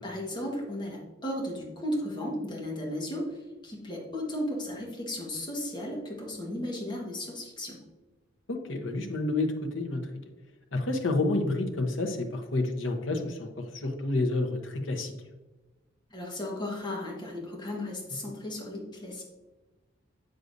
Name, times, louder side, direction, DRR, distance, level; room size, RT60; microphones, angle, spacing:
voice 1, 0.0-7.8 16.1-19.2, left 1 dB, 25° left, -2 dB, 1.4 m, -35 dB
voice 2, 8.5-10.0 10.7-15.1, left 2 dB, 85° left, 3 dB, 0.9 m, -29 dB
7.9 x 6.5 x 2.6 m, 1.2 s
head